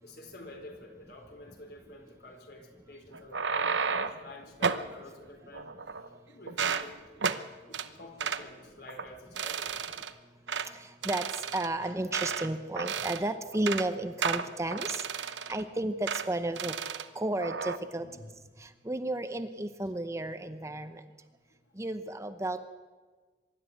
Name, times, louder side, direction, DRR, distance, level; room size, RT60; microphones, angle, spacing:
voice 1, 0.0-5.7 6.3-6.9 7.7-9.9 17.9-18.3 21.5-21.6, left 2 dB, 60° left, 4 dB, 4.2 m, -48 dB
sound 1, 3.1-4.2 4.6-4.9 5.5-6.2 6.5-6.9 7.2-7.4 7.7-7.9 8.2-8.4 8.9-9.1 9.4-10.1 10.5-10.7 11.0-12.5 12.8-13.2 13.5-13.9 14.2-15.6 16.1-16.3 16.6-17.1 17.4-17.8, right 6 dB, 90° right, 0.9 m, -32 dB
voice 2, 10.7-16.7 17.1-18.1 18.6-21.0 21.8-22.6, right 1 dB, 15° right, 9 dB, 0.8 m, -33 dB
24.5 x 12.5 x 9.4 m, 1.4 s
head